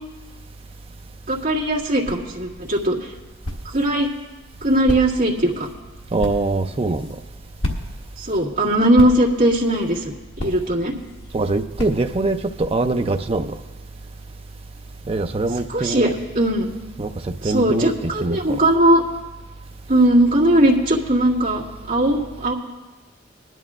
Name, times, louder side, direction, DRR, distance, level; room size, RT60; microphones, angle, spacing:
voice 1, 1.3-3.0 3.7-4.1 4.6-5.7 8.2-10.0 10.4-10.9 15.7-16.8 17.4-19.0 19.9-22.5, right 1 dB, 45° right, 1.9 m, -19 dB
sound 1, 1.6-12.4, left 1 dB, 80° left, 1.5 m, -35 dB
voice 2, 6.1-7.2 11.3-13.6 15.1-16.1 17.0-18.6, right 2 dB, 30° right, 0.5 m, -23 dB
20.5 x 11.0 x 2.4 m
head